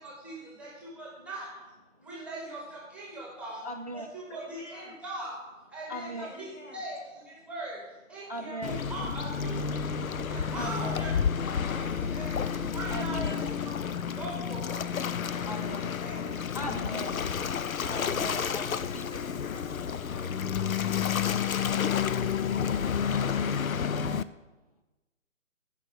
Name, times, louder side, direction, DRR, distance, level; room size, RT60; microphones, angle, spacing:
voice 1, 0.0-1.5 2.0-3.6 3.9-5.4 5.7-7.8 8.1-12.4 12.7-14.9 15.2-16.4, right 2 dB, 5° right, -5 dB, 1.2 m, -41 dB
voice 2, 3.6-4.1 5.9-6.3 8.3-8.8 10.6-11.0 12.9-13.4 15.4-15.9 16.5-17.3 17.8-19.2 21.2-23.3, equal, 30° right, 6 dB, 0.4 m, -40 dB
voice 3, 4.3-5.0 6.2-6.8 10.7-11.2 12.8-13.6, left 2 dB, 60° left, 1 dB, 2.6 m, -52 dB
Waves surf, 8.6-24.2, left 7 dB, 80° left, 0.6 m, -30 dB
sound 1, 8.8-13.3, left 3 dB, 25° left, 2.8 m, -41 dB
14.5 x 5.1 x 4.8 m, 1.1 s
figure-of-eight pair, 140°, 41 cm